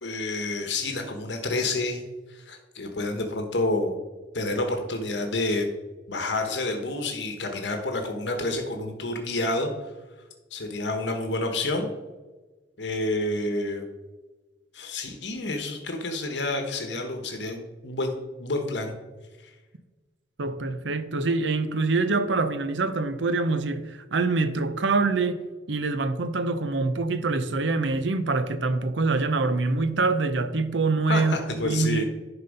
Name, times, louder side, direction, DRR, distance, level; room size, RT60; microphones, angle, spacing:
voice 1, 0.0-2.0 2.3-4.0 4.3-5.7 6.1-9.7 10.5-11.9 12.8-13.9 14.7-18.9 31.1-32.0, left 2 dB, 75° left, 1.1 m, -29 dB
voice 2, 20.4-32.0, right 3 dB, 85° right, 0.7 m, -25 dB
10.5 x 4.0 x 5.3 m
head